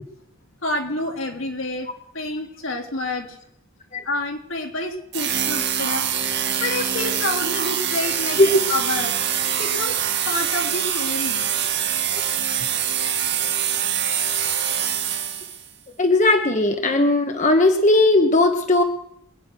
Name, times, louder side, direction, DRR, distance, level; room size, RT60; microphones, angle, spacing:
voice 1, 0.6-1.9 2.1-3.4 4.0-6.1 6.6-8.4 8.7-9.2 9.4-10.0 10.3-11.6, left 2 dB, 75° left, 2 dB, 3.4 m, -28 dB
sound 1, 5.1-15.7, right 9 dB, 55° right, 2.1 m, -24 dB
voice 2, 16.0-18.8, left 2 dB, 35° left, 5 dB, 1.1 m, -17 dB
24.5 x 9.6 x 6.1 m, 0.74 s
head